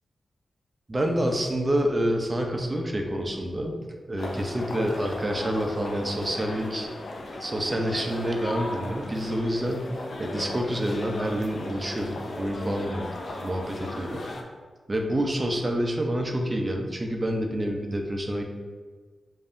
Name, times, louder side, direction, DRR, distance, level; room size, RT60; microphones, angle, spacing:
voice 1, 0.9-3.7 4.1-6.9 7.2-14.3 14.9-18.4, equal, 35° right, 2 dB, 0.7 m, -28 dB
sound 1, 4.2-14.4, left 2 dB, 65° left, 0.5 m, -36 dB
5.2 x 2.7 x 2.6 m, 1.5 s
supercardioid pair, 40°, 0 cm